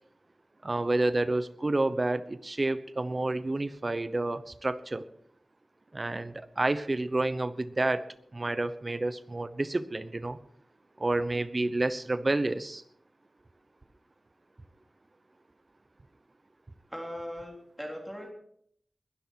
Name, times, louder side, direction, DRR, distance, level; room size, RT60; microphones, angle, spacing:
voice 1, 0.6-5.0 5.9-8.0 8.3-10.4 11.0-12.8, right 2 dB, 30° right, 14 dB, 0.9 m, -29 dB
voice 2, 16.9-18.3, equal, ahead, 1 dB, 3.3 m, -39 dB
21.0 x 12.5 x 4.6 m, 0.68 s
wide cardioid pair, 95°, 0 cm